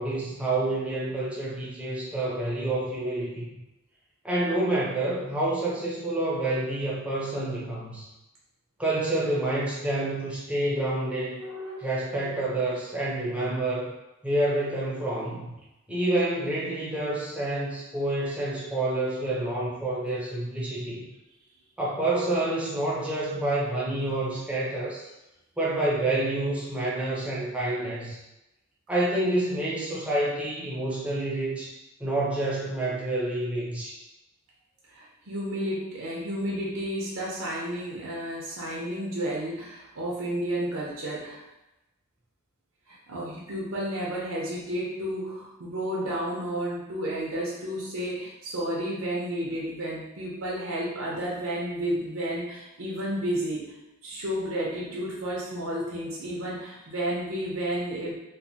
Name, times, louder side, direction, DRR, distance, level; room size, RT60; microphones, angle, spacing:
voice 1, 0.0-3.5 4.2-8.1 8.8-11.4 11.8-13.9 14.2-15.5 15.9-21.0 21.8-25.1 25.6-28.2 28.9-31.7 32.0-34.0, right 1 dB, 5° right, -7 dB, 0.6 m, -28 dB
voice 2, 11.3-11.9 34.9-41.4 42.9-53.7 54.0-58.1, right 1 dB, 70° right, -5 dB, 0.7 m, -32 dB
3.1 x 2.1 x 2.7 m, 0.95 s
head